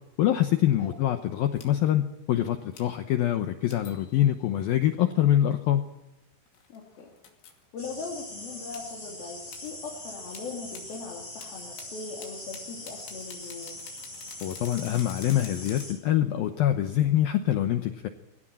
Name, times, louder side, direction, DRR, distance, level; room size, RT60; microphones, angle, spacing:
voice 1, 0.2-5.9 14.4-18.1, left 12 dB, 90° left, 8 dB, 2.1 m, -25 dB
sound 1, 1.6-1.9 2.7-3.0 3.7-4.5 6.5-7.6 8.7-8.9 9.5-9.7 10.3-11.0 11.4-15.9, left 8 dB, 70° left, 4.8 m, -50 dB
voice 2, 6.7-7.1 7.7-13.8, left 4 dB, 55° left, -2 dB, 4.4 m, -40 dB
sound 2, 7.8-15.9, left 1 dB, 10° left, 7.5 m, -42 dB
21.5 x 18.0 x 9.0 m, 0.92 s
omnidirectional pair, 5.6 m